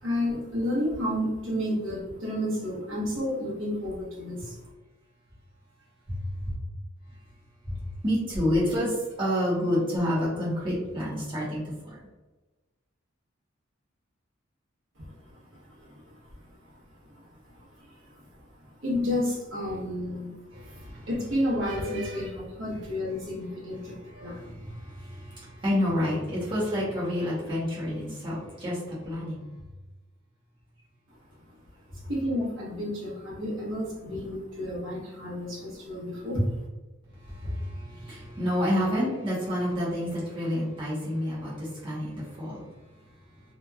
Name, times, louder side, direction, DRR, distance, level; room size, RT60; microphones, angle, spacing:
voice 1, 0.0-4.6 15.0-15.1 15.6-16.2 17.0-17.1 17.9-18.3 18.6-24.5 32.0-36.5, left 1 dB, 70° right, -6 dB, 1.0 m, -31 dB
voice 2, 6.1-6.5 7.6-12.0 20.5-21.1 23.8-29.5 37.2-42.7, equal, 25° right, -8 dB, 0.8 m, -29 dB
2.9 x 2.3 x 2.2 m, 1.2 s
head